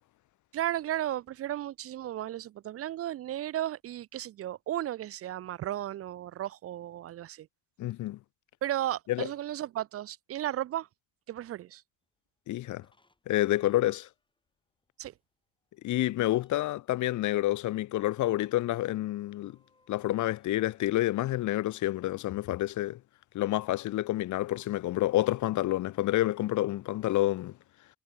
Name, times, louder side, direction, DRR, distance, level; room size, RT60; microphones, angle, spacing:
voice 1, 0.5-7.5 8.6-10.9 11.3-11.8 15.0-15.1, right 12 dB, 50° right, 0.4 m, -34 dB
voice 2, 7.8-8.2 9.1-9.3 12.5-12.8 13.3-14.1 15.8-19.6 19.9-23.0 23.3-27.5, left 15 dB, 75° left, 0.7 m, -28 dB
sound 1, 12.6-14.4 14.8-14.9 15.2-15.3 15.7-16.9 18.2-22.1, left 2 dB, 15° left, 8.0 m, -66 dB
cardioid pair, 90°, 30 cm